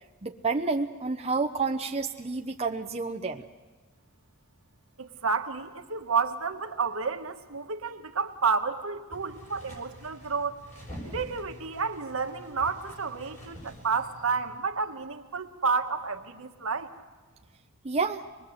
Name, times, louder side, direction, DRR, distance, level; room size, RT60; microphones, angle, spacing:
voice 1, 0.2-3.4 17.8-18.2, right 4 dB, 30° right, 3 dB, 0.8 m, -29 dB
voice 2, 5.0-10.6 11.1-16.9, right 5 dB, 65° right, 6 dB, 1.5 m, -30 dB
sound 1, 9.1-14.6, equal, 35° left, 6.8 m, -46 dB
25.0 x 21.0 x 7.8 m, 1.3 s
head